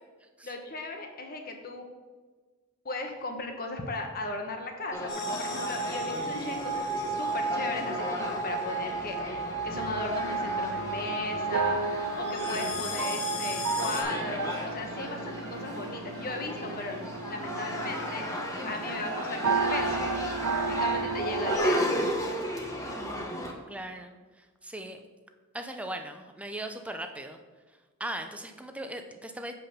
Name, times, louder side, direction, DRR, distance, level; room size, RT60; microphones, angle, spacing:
voice 1, 0.4-1.9 2.8-17.0 17.3-18.3 18.7-20.1 20.7-22.2, left 2 dB, 45° left, 3 dB, 1.2 m, -37 dB
sound 1, 4.9-23.5, equal, 15° left, 1.0 m, -35 dB
sound 2, 5.1-14.0, right 2 dB, 90° left, 2.4 m, -33 dB
sound 3, 9.7-21.6, right 5 dB, 70° right, 0.5 m, -34 dB
voice 2, 23.7-25.0 25.5-27.4 28.0-29.5, right 1 dB, 5° right, 6 dB, 0.6 m, -38 dB
7.9 x 5.3 x 5.7 m, 1.3 s
head